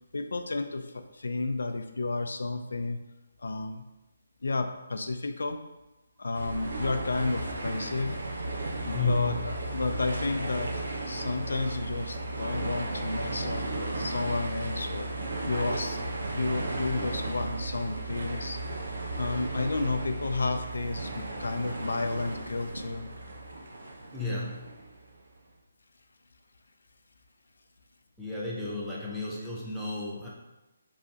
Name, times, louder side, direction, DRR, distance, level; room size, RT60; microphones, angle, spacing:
voice 1, 0.1-3.0 3.4-3.8 4.4-5.6 6.2-8.2 8.8-10.7 11.1-16.0 16.3-18.6 19.2-23.1, left 3 dB, 75° left, 7 dB, 0.4 m, -32 dB
sound 1, 6.3-25.1, right 2 dB, 85° right, 0.8 m, -35 dB
voice 2, 8.9-9.5 24.1-24.7 28.2-30.3, left 2 dB, ahead, -8 dB, 0.4 m, -33 dB
5.3 x 3.2 x 2.8 m, 1.0 s
hypercardioid pair, 180°, 0 cm